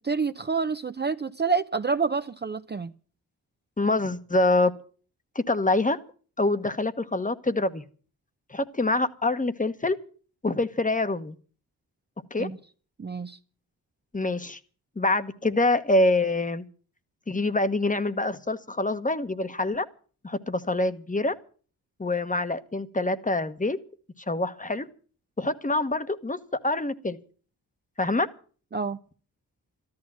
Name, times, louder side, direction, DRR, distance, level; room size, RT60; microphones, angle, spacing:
voice 1, 0.0-2.9 12.4-12.6 13.0-13.4 28.7-29.0, right 5 dB, 30° right, 0.7 m, -28 dB
voice 2, 3.8-4.7 5.3-6.0 6.4-7.8 8.5-10.0 10.4-11.4 12.3-12.5 14.1-14.6 15.0-16.6 17.3-19.8 20.2-21.3 22.0-23.8 24.3-24.9 25.4-26.4 26.6-27.2 28.0-28.3, left 2 dB, 20° left, 1.2 m, -25 dB
13.5 x 11.5 x 7.4 m
cardioid pair, 70°, 37 cm